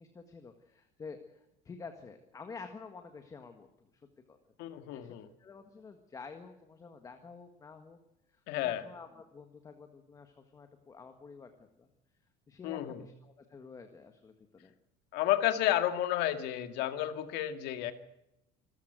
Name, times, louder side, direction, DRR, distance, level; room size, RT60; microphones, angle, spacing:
voice 1, 0.0-3.9 4.3-4.4 4.7-8.0 8.3-11.9 12.5-14.7, left 5 dB, 20° left, 6 dB, 1.7 m, -50 dB
voice 2, 4.6-5.3 8.5-8.8 12.6-13.0 15.1-17.9, left 13 dB, 60° left, 9 dB, 2.1 m, -31 dB
27.0 x 14.0 x 8.0 m, 0.88 s
cardioid pair, 170°, 19 cm